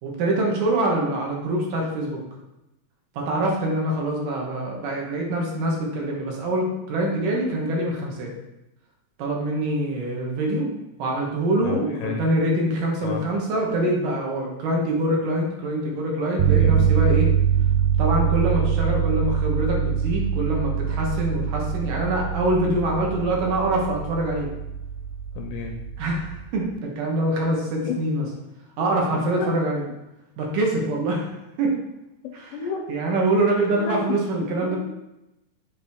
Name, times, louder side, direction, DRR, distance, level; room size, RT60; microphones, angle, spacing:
voice 1, 0.0-2.2 3.2-8.3 9.2-10.7 11.0-17.3 18.0-24.5 26.0-28.3 28.8-29.8 30.4-31.3 31.6-31.8 32.4-32.5 32.9-34.8, right 1 dB, 70° right, -1 dB, 2.6 m, -24 dB
voice 2, 11.6-12.2 13.0-13.2 16.5-17.0 25.3-25.7 27.8-28.0 29.1-29.5 32.2-32.8 33.7-34.0 34.6-34.8, left 6 dB, 80° left, 2 dB, 2.0 m, -31 dB
sound 1, 16.4-26.5, right 8 dB, 85° right, 1.7 m, -24 dB
7.7 x 5.0 x 3.5 m, 0.93 s
omnidirectional pair, 4.2 m